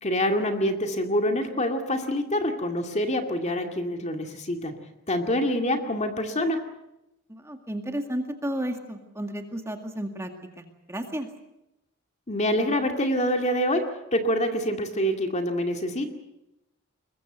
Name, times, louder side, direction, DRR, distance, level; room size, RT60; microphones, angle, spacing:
voice 1, 0.0-4.8 5.1-6.6 12.3-16.1, equal, 30° left, 5 dB, 2.3 m, -26 dB
voice 2, 7.3-11.3, right 1 dB, 15° right, 4 dB, 2.0 m, -33 dB
22.5 x 21.5 x 8.0 m, 0.89 s
head